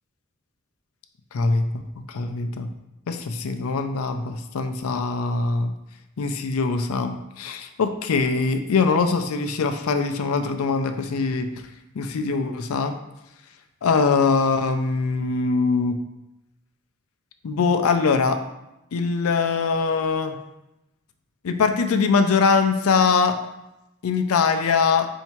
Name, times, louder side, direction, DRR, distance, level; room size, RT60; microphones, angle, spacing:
voice 1, 1.3-1.7 2.1-2.7 3.1-5.7 6.2-11.5 12.0-12.9 13.8-16.0 17.4-18.4 18.9-20.3 21.4-23.4 24.0-25.1, left 4 dB, 80° left, 7 dB, 0.4 m, -22 dB
4.5 x 2.7 x 4.3 m, 0.92 s
head